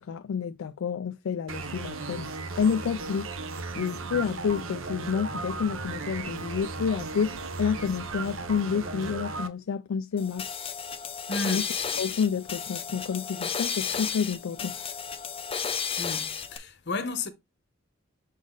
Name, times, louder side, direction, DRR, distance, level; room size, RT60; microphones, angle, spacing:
voice 1, 0.0-2.3 2.6-3.3 3.8-10.5 11.5-11.6 12.0-14.9, left 6 dB, 75° left, 0.4 m, -29 dB
sound 1, 1.5-9.5, right 4 dB, 75° right, 0.8 m, -36 dB
Vehicle, 3.7-9.1, equal, 15° right, 1.2 m, -47 dB
sound 2, 10.2-16.6, left 6 dB, 30° left, 0.5 m, -33 dB
voice 2, 11.3-11.6 16.0-17.3, left 3 dB, 55° left, 1.0 m, -33 dB
6.2 x 4.1 x 3.8 m
head